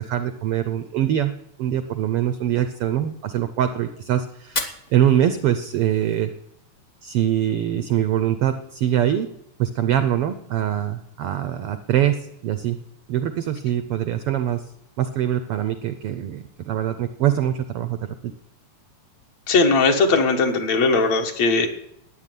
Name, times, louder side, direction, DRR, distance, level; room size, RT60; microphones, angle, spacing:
voice 1, 0.0-1.3 1.6-6.3 7.0-9.3 9.6-12.8 13.1-14.7 15.0-18.3, right 11 dB, 80° right, 10 dB, 1.3 m, -23 dB
Fire, 4.4-6.4, left 4 dB, 35° left, 1.2 m, -34 dB
voice 2, 19.5-21.7, left 3 dB, 60° left, 4 dB, 2.6 m, -19 dB
13.5 x 9.3 x 9.3 m, 0.78 s
omnidirectional pair, 3.5 m